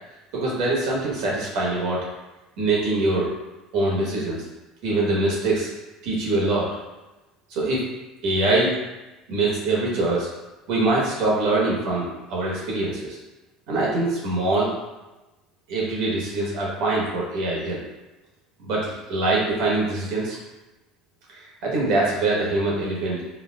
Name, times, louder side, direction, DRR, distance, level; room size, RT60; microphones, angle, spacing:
voice 1, 0.3-2.0 2.6-3.3 3.7-4.4 4.8-5.7 6.0-6.7 7.5-7.8 8.2-8.7 9.3-10.3 10.7-13.2 13.7-14.7 15.7-17.8 18.6-20.4 21.3-23.2, right 2 dB, 65° right, -4 dB, 1.1 m, -23 dB
4.5 x 2.0 x 2.3 m, 1.1 s
cardioid pair, 165°, 0 cm